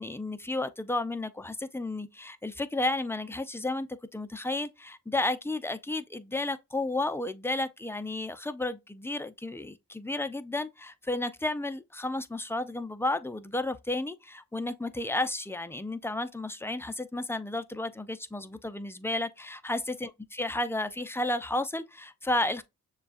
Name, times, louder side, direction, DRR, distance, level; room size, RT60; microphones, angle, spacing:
voice 1, 0.0-22.6, left 2 dB, 5° left, 0.6 m, -32 dB
6.6 x 2.4 x 2.5 m
cardioid pair, 40°, 36 cm